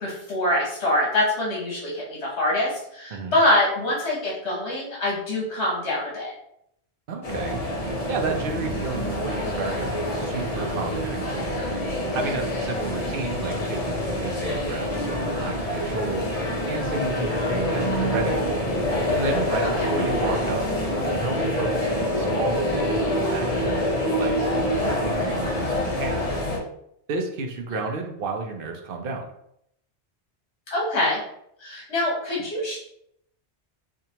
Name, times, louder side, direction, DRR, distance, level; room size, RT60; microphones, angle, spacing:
voice 1, 0.0-6.3 19.6-19.9 30.7-31.2 31.6-32.8, left 1 dB, 75° left, -5 dB, 1.3 m, -24 dB
voice 2, 7.1-7.6 8.1-11.6 12.1-16.3 16.6-18.4 19.1-20.7 21.1-23.8 24.2-26.2 27.1-29.3, right 3 dB, 60° right, 3 dB, 0.8 m, -32 dB
sound 1, 7.2-26.6, left 1 dB, 40° left, 0.7 m, -26 dB
4.5 x 2.5 x 2.8 m, 0.75 s
omnidirectional pair, 1.1 m